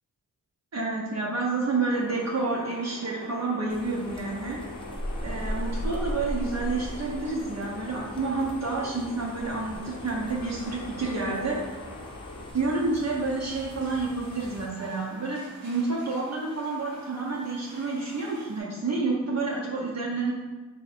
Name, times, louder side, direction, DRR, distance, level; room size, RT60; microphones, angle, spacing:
voice 1, 0.7-4.6 5.2-11.6 12.5-20.3, right 3 dB, 50° right, -4 dB, 0.7 m, -29 dB
sound 1, 1.9-12.5, left 2 dB, 55° left, 0.6 m, -43 dB
sound 2, 3.7-14.7, equal, 15° left, 0.6 m, -38 dB
sound 3, 13.4-18.6, right 1 dB, 90° right, 1.1 m, -49 dB
3.1 x 2.7 x 4.1 m, 1.3 s
wide cardioid pair, 70°, 35 cm